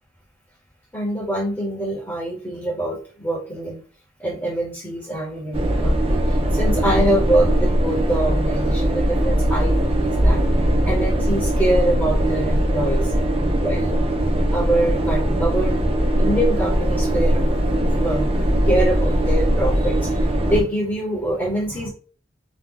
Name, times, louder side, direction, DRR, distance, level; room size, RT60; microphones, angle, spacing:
voice 1, 0.9-3.8 4.2-10.4 10.9-13.1 13.6-14.0 14.5-15.8 16.2-17.6 18.0-18.3 18.6-20.2 20.4-21.9, right 1 dB, 15° left, -4 dB, 1.0 m, -24 dB
sound 1, 5.5-20.6, right 1 dB, 30° right, 0.6 m, -20 dB
2.9 x 2.3 x 3.7 m, 0.39 s
head